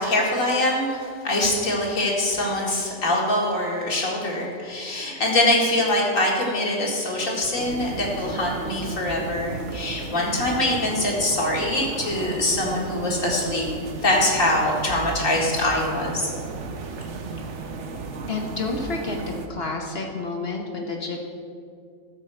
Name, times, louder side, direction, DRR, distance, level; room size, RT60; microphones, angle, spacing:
voice 1, 0.0-13.7 14.0-16.3, left 1 dB, 80° left, -3 dB, 2.5 m, -23 dB
sound 1, 7.6-19.5, right 3 dB, 65° right, 1.2 m, -34 dB
voice 2, 18.3-21.2, left 3 dB, 55° left, 2 dB, 1.2 m, -30 dB
12.5 x 4.5 x 7.7 m, 2.2 s
omnidirectional pair, 1.4 m